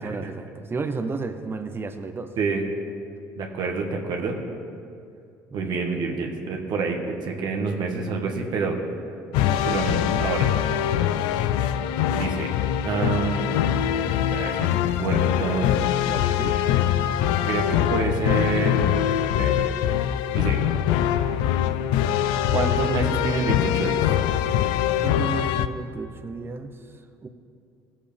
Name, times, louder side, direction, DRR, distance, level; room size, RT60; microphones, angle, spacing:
voice 1, 0.0-2.3 5.5-6.1 12.9-13.2 16.1-16.6 25.0-26.7 27.2-27.3, right 4 dB, 30° right, 7 dB, 0.9 m, -33 dB
voice 2, 3.4-4.4 5.5-8.8 9.6-10.5 12.1-12.5 12.8-13.5 14.3-14.7 15.0-15.7 17.4-18.8 19.4-19.8 20.3-20.6 22.5-24.1, right 4 dB, 60° right, 1 dB, 1.5 m, -27 dB
sound 1, 9.3-25.7, left 10 dB, 75° left, 0.4 m, -23 dB
17.0 x 7.4 x 3.5 m, 2.5 s
hypercardioid pair, 70°, 8 cm